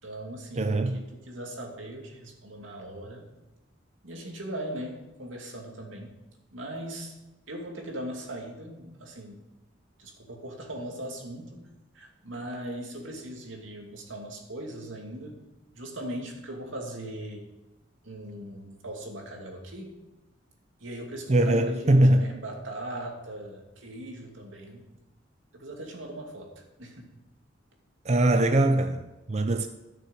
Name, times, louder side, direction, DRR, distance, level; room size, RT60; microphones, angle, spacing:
voice 1, 0.0-3.3 4.0-6.1 6.5-7.1 7.5-9.4 10.0-11.6 11.9-15.4 15.7-17.5 18.0-20.0 20.8-24.9 25.5-26.5 26.8-27.1, right 1 dB, 90° right, 2.5 m, -39 dB
voice 2, 0.6-1.0 21.3-22.3 28.1-29.7, right 1 dB, 35° right, 0.5 m, -22 dB
13.0 x 6.8 x 6.4 m
head